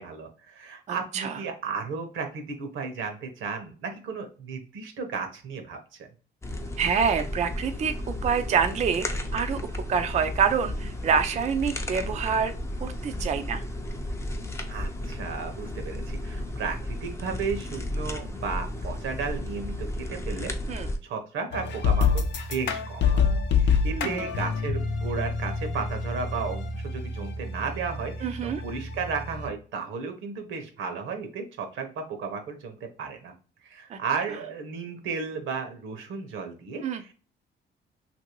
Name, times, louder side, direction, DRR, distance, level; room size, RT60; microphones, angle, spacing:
voice 1, 0.0-6.1 14.7-20.5 21.0-23.3 23.5-33.3 33.6-37.1, right 5 dB, 80° right, 5 dB, 0.8 m, -34 dB
voice 2, 0.9-1.4 6.8-9.6 9.9-12.5 12.8-13.6 20.7-20.9 23.9-24.3 28.2-28.6 33.9-34.0 36.8-37.0, right 6 dB, 35° right, 7 dB, 0.4 m, -26 dB
sound 1, 6.4-21.0, left 1 dB, 15° left, 0.5 m, -33 dB
sound 2, 21.5-29.5, left 5 dB, 65° left, 0.6 m, -27 dB
2.9 x 2.6 x 2.8 m, 0.37 s
cardioid pair, 90°, 20 cm